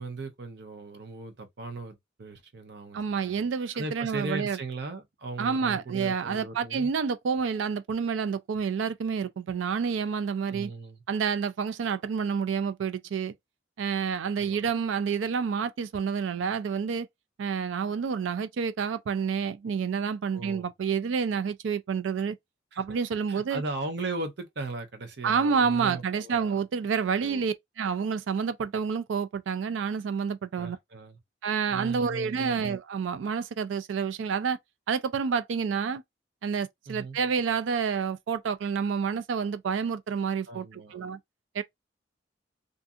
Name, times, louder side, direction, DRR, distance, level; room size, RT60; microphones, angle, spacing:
voice 1, 0.0-3.4 3.7-6.9 10.4-11.0 14.4-14.7 20.3-20.7 22.7-22.8 23.3-26.6 27.2-27.4 30.6-31.2 31.7-32.6 36.9-37.2 40.5-41.0, right 3 dB, 60° right, 0.7 m, -38 dB
voice 2, 2.9-4.6 5.4-10.7 11.1-13.3 13.8-17.1 17.4-22.4 22.8-23.6 25.2-30.8 31.4-34.6 34.9-36.0 36.4-41.2 41.5-41.6, right 6 dB, 90° right, 0.4 m, -29 dB
2.6 x 2.4 x 2.6 m
head